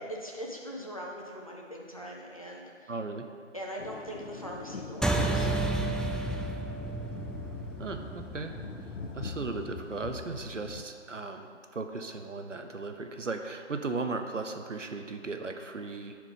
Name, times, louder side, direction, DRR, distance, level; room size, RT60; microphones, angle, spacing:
voice 1, 0.1-2.9 3.5-5.5, equal, 30° left, -2 dB, 0.8 m, -41 dB
voice 2, 2.9-3.3 7.8-8.5 8.9-16.2, right 3 dB, 80° right, 6 dB, 0.9 m, -37 dB
sound 1, 3.8-10.8, left 4 dB, 85° left, 0.8 m, -42 dB
sound 2, 5.0-9.8, right 2 dB, ahead, 0.3 m, -32 dB
10.0 x 4.9 x 5.3 m, 2.2 s
figure-of-eight pair, 175°, 37 cm